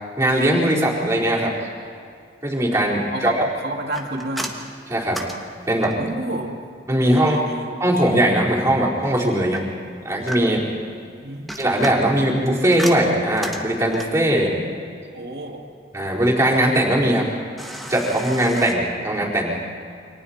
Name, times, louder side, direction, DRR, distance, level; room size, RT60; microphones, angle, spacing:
voice 1, 0.2-1.5 2.4-3.4 4.9-5.2 5.7-6.0 6.9-7.4 7.8-9.6 10.0-10.6 11.6-14.5 15.9-17.3 17.9-19.5, right 1 dB, 15° right, -4 dB, 4.2 m, -20 dB
voice 2, 2.9-4.6 6.0-6.6 7.0-7.7 11.2-11.6 14.3-14.5 15.1-15.6, right 2 dB, 60° right, 1 dB, 2.6 m, -31 dB
sound 1, 3.9-6.2 9.5-10.8 11.3-14.3 17.6-18.7, equal, ahead, 1.6 m, -34 dB
29.0 x 26.0 x 4.4 m, 2.3 s
head